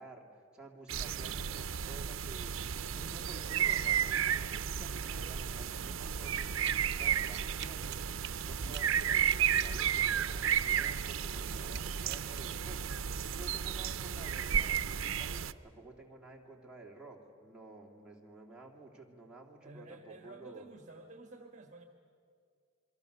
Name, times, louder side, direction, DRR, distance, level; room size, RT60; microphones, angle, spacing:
voice 1, 0.0-20.7, right 3 dB, 5° right, -3 dB, 2.8 m, -52 dB
sound 1, 0.9-15.5, right 8 dB, 80° right, 0.6 m, -33 dB
voice 2, 3.0-4.1 8.6-8.8 19.6-21.8, right 2 dB, 40° right, 6 dB, 1.6 m, -52 dB
sound 2, 6.6-7.0 7.2-10.6 11.0-12.5, right 12 dB, 60° right, 0.9 m, -46 dB
27.5 x 23.0 x 6.8 m, 2.3 s
head